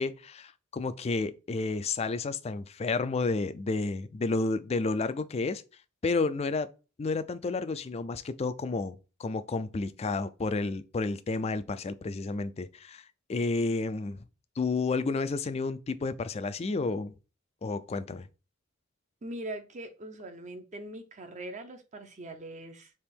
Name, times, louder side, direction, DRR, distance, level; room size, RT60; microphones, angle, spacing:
voice 1, 0.0-5.6 6.0-6.7 7.0-13.0 13.3-14.2 14.6-17.1 17.6-18.3, left 3 dB, 30° left, 0.4 m, -31 dB
voice 2, 19.2-22.9, right 1 dB, 35° right, 0.7 m, -41 dB
3.5 x 3.0 x 4.4 m
head